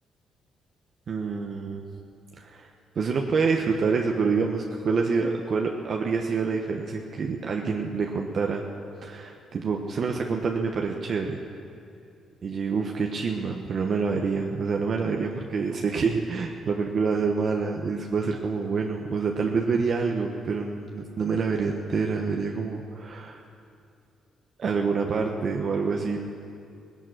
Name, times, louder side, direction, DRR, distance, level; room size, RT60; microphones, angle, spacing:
voice 1, 1.1-1.8 2.4-2.7 2.9-8.6 9.0-11.4 12.4-23.4 24.6-26.3, right 5 dB, 50° right, 2 dB, 1.1 m, -27 dB
18.5 x 11.0 x 6.4 m, 2.4 s
cardioid pair, 90°, 0 cm